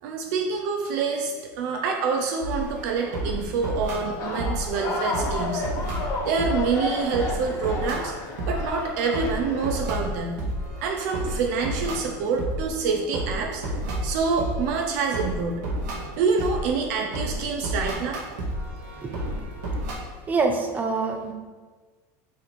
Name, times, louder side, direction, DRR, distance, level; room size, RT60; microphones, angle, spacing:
voice 1, 0.0-5.6 6.3-8.1 8.5-10.4 10.8-13.6 14.0-15.6 16.1-18.2, right 5 dB, 65° right, 2 dB, 0.8 m, -26 dB
sound 1, 2.4-19.9, right 1 dB, 90° right, 1.8 m, -32 dB
sound 2, 4.2-9.8, left 2 dB, 35° left, 1.2 m, -32 dB
voice 2, 20.3-21.3, right 4 dB, 15° right, 5 dB, 0.6 m, -25 dB
6.6 x 3.4 x 4.4 m, 1.4 s
cardioid pair, 160°, 9 cm